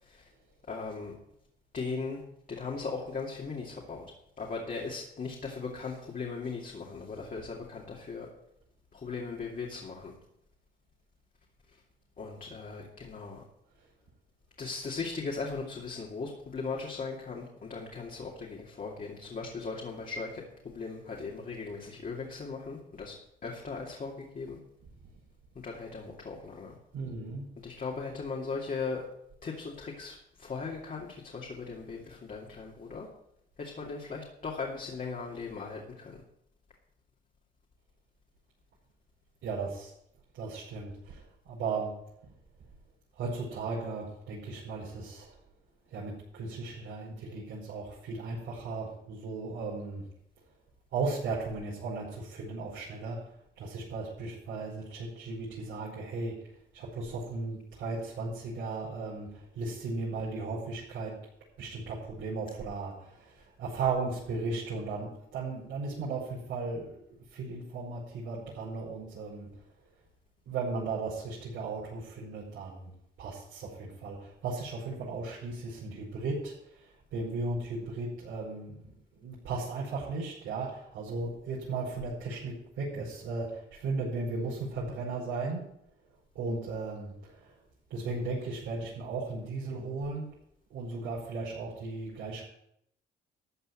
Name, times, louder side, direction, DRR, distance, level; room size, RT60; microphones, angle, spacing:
voice 1, 0.7-1.1 1.7-2.2 2.5-4.1 4.4-8.3 8.9-10.1 12.2-13.4 14.6-23.2 23.4-24.6 25.6-26.7 27.6-29.0 29.4-33.1 33.6-36.2, left 4 dB, 45° left, -3 dB, 2.7 m, -38 dB
voice 2, 26.9-27.4 39.4-39.9 40.3-41.2 41.5-41.9 43.2-45.3 45.9-50.0 50.9-53.2 53.6-56.3 56.7-61.1 61.6-67.0 67.3-69.5 70.5-72.9 73.2-76.9 77.1-85.6 86.4-87.5 87.9-90.3 90.7-92.4, right 3 dB, 80° right, -7 dB, 5.4 m, -36 dB
13.5 x 5.6 x 9.1 m, 0.76 s
cardioid pair, 90°, 20 cm